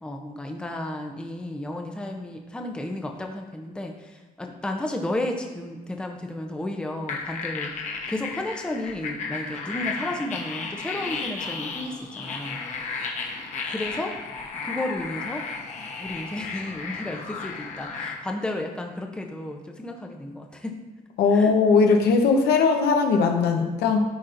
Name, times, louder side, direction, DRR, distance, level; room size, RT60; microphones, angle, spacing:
voice 1, 0.0-12.6 13.7-14.2 14.6-15.4 16.0-20.7 21.3-21.5, left 1 dB, 5° left, 3 dB, 0.6 m, -33 dB
sound 1, 7.1-18.2, left 4 dB, 45° left, 1.0 m, -33 dB
voice 2, 21.2-24.0, left 4 dB, 75° left, 3 dB, 1.0 m, -19 dB
10.5 x 4.3 x 2.6 m, 1.3 s
cardioid pair, 115°, 17 cm